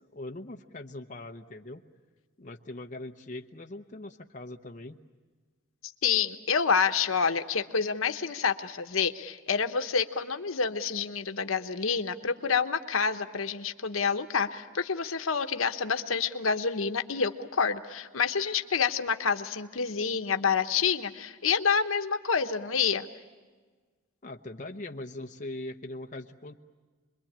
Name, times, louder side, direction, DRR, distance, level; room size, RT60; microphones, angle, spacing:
voice 1, 0.0-1.8 2.4-5.0 24.2-26.5, left 2 dB, 40° left, 4 dB, 0.9 m, -41 dB
voice 2, 6.0-23.1, left 6 dB, 85° left, 8 dB, 1.0 m, -28 dB
27.0 x 22.0 x 8.7 m, 1.4 s
head